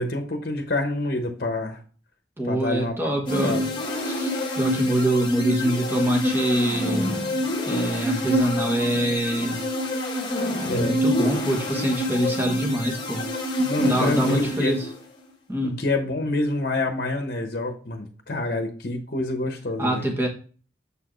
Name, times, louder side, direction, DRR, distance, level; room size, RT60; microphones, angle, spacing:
voice 1, 0.0-1.8 2.4-3.1 3.4-3.7 10.6-11.0 13.6-14.8 15.6-20.0, left 2 dB, 55° left, 5 dB, 0.9 m, -27 dB
voice 2, 2.4-3.6 4.0-7.1 7.7-9.6 10.7-13.2 13.8-14.9 15.5-15.8 19.8-20.3, right 1 dB, 15° right, 0 dB, 1.3 m, -25 dB
sound 1, 3.3-15.0, left 1 dB, 25° left, 1.1 m, -27 dB
6.8 x 4.6 x 3.1 m, 0.39 s
head